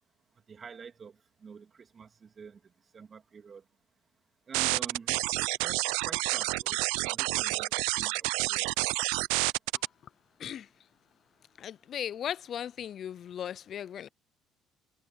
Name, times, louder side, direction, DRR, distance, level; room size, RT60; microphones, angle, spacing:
voice 1, 0.5-2.6 2.9-3.6 4.5-8.6, right 6 dB, 40° right, 2.9 m, -48 dB
sound 1, 4.5-9.8, right 25 dB, 85° right, 0.6 m, -29 dB
voice 2, 11.6-14.1, left 9 dB, 55° left, 0.3 m, -37 dB
supercardioid pair, 75°, 0 cm